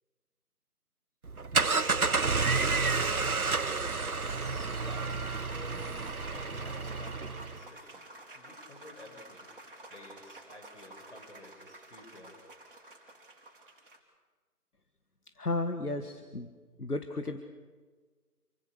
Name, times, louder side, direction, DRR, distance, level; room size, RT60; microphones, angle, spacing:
sound 1, 1.2-7.6, right 4 dB, 65° right, 1.2 m, -30 dB
sound 2, 2.1-14.0, right 2 dB, 35° right, 3.6 m, -50 dB
voice 1, 4.7-9.5 9.8-12.4, left 1 dB, 45° left, 3 dB, 7.2 m, -52 dB
voice 2, 15.4-16.5 16.8-17.4, left 2 dB, 70° left, 7 dB, 1.9 m, -33 dB
28.0 x 24.0 x 6.6 m, 1.4 s
figure-of-eight pair, 160°, 47 cm